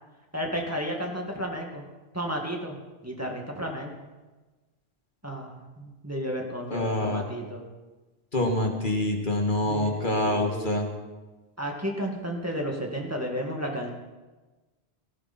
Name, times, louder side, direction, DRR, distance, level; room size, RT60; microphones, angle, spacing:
voice 1, 0.3-1.8 2.1-3.9 5.2-7.7 9.6-10.8 11.6-13.9, equal, 15° right, 0 dB, 2.2 m, -33 dB
voice 2, 6.7-7.2 8.3-10.9, left 1 dB, 50° left, 2 dB, 2.0 m, -26 dB
18.0 x 17.0 x 4.4 m, 1.2 s
omnidirectional pair, 1.1 m